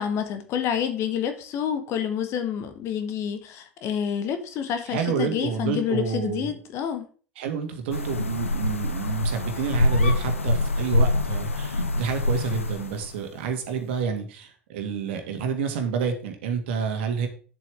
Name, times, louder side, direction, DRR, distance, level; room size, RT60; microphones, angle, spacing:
voice 1, 0.0-7.1, left 8 dB, 40° left, 8 dB, 1.4 m, -28 dB
voice 2, 4.9-6.5 7.4-17.3, right 6 dB, 60° right, 5 dB, 2.0 m, -29 dB
sound 1, 7.9-13.2, left 2 dB, 80° left, 0.7 m, -25 dB
9.1 x 7.7 x 3.5 m, 0.40 s
figure-of-eight pair, 80°, 7 cm